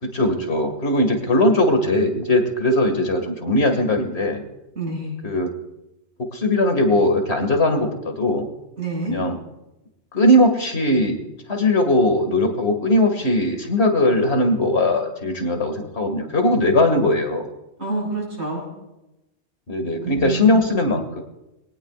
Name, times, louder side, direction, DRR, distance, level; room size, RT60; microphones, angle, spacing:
voice 1, 0.0-4.4 5.2-5.5 6.2-8.5 9.1-9.4 10.1-11.2 11.5-17.5 19.7-21.2, left 1 dB, 70° left, 5 dB, 2.4 m, -19 dB
voice 2, 4.7-5.2 8.8-9.2 17.8-18.7 20.0-20.6, right 2 dB, 80° right, -3 dB, 6.4 m, -27 dB
23.5 x 18.0 x 2.5 m, 0.94 s
omnidirectional pair, 1.1 m